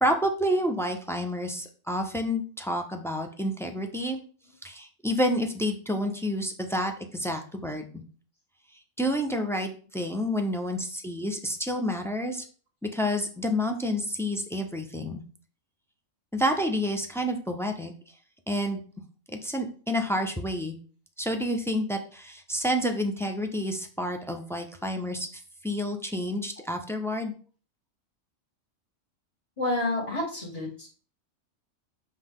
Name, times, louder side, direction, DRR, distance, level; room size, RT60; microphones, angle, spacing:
voice 1, 0.0-4.2 4.6-8.0 9.0-12.4 12.8-15.2 16.3-17.9 18.5-18.8 19.4-20.8 21.2-27.3, equal, 5° left, 4 dB, 0.4 m, -29 dB
voice 2, 29.6-30.9, left 2 dB, 25° left, -7 dB, 1.5 m, -30 dB
7.7 x 3.5 x 3.6 m, 0.41 s
omnidirectional pair, 1.4 m